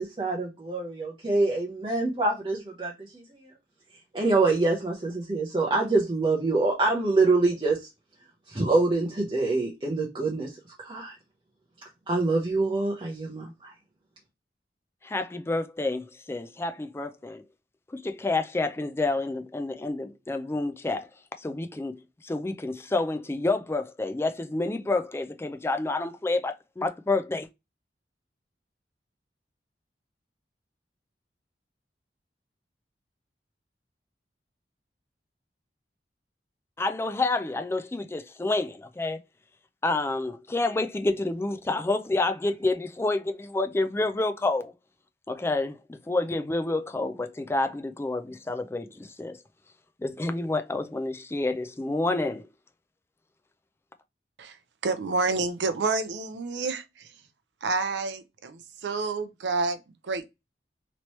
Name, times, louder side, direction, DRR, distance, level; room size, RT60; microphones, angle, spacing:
voice 1, 0.0-3.1 4.1-7.8 8.5-10.5 10.8-11.2 12.1-13.7, right 3 dB, 30° right, 0.8 m, -25 dB
voice 2, 15.0-17.4 17.9-21.1 21.4-22.0 22.2-27.5 36.8-39.2 39.8-44.7 45.3-49.4 50.0-52.5, left 2 dB, 15° left, 0.3 m, -29 dB
voice 3, 54.8-57.1 57.6-60.3, right 3 dB, 85° right, 0.5 m, -29 dB
3.0 x 2.9 x 3.0 m
head